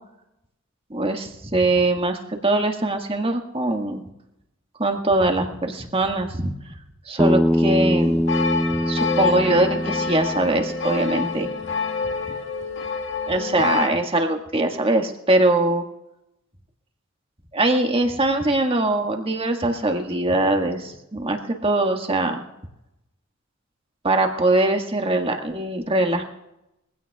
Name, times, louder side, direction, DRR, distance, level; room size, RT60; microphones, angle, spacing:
voice 1, 0.9-4.0 4.8-6.7 7.0-8.2 8.8-11.5 13.3-15.8 17.5-22.4 24.0-26.2, right 2 dB, 30° right, 4 dB, 1.7 m, -22 dB
Bass guitar, 7.2-11.4, equal, 5° left, 0.4 m, -23 dB
sound 1, 8.3-13.9, left 5 dB, 65° left, 1.8 m, -27 dB
22.5 x 16.0 x 2.4 m, 0.88 s
head